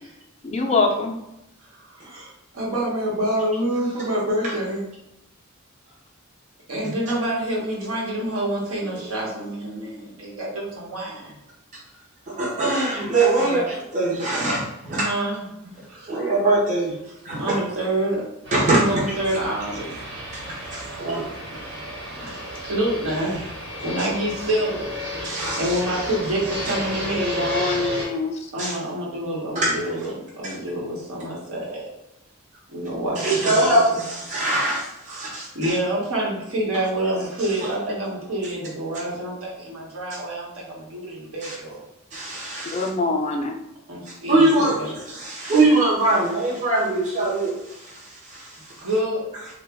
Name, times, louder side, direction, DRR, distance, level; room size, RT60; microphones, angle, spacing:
voice 1, 0.4-1.1 27.2-28.4 42.7-43.6, left 3 dB, 30° left, 2 dB, 0.4 m, -24 dB
voice 2, 1.8-4.8 6.7-11.4 13.4-13.6 14.9-15.4 15.9-16.1 17.3-18.2 18.7-19.9 21.5-21.6 22.1-24.9 25.2-27.5 28.5-31.9 32.7-34.0 35.1-41.8 43.9-44.9 48.8-49.3, right 1 dB, 75° right, -4 dB, 1.0 m, -27 dB
voice 3, 12.3-13.6 13.9-15.1 16.1-17.0 17.2-17.6 18.5-19.0 20.5-21.3 25.2-25.8 28.6-28.7 29.6-29.8 30.4-30.5 33.2-35.8 41.4-41.6 42.1-42.9 44.3-48.7, right 2 dB, 35° right, -5 dB, 0.7 m, -22 dB
Fixed-wing aircraft airplane, 18.4-28.0, equal, 55° right, 1.2 m, -32 dB
2.9 x 2.2 x 3.4 m, 0.88 s
head